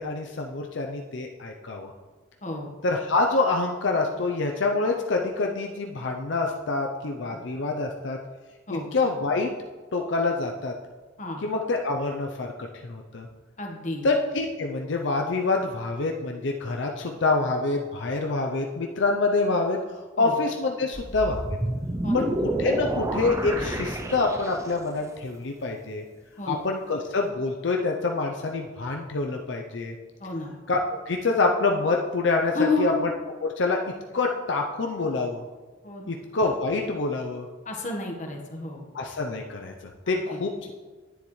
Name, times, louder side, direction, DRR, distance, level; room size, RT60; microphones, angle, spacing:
voice 1, 0.0-1.9 2.8-8.2 8.9-9.5 9.9-10.7 11.4-13.3 14.0-21.6 22.1-26.0 26.5-30.0 30.7-33.1 33.4-33.8 34.1-35.4 36.1-37.5 38.9-40.7, left 3 dB, 70° left, 1 dB, 0.6 m, -26 dB
voice 2, 2.4-2.7 8.7-8.9 11.2-11.4 13.6-14.0 20.2-20.3 22.0-22.3 26.4-26.6 30.2-30.5 32.5-32.9 35.8-36.2 37.6-38.9 40.0-40.4, left 2 dB, 40° left, 1 dB, 1.3 m, -30 dB
sound 1, 20.9-24.9, right 1 dB, 15° right, 0.5 m, -29 dB
10.0 x 9.3 x 3.2 m, 1.4 s
head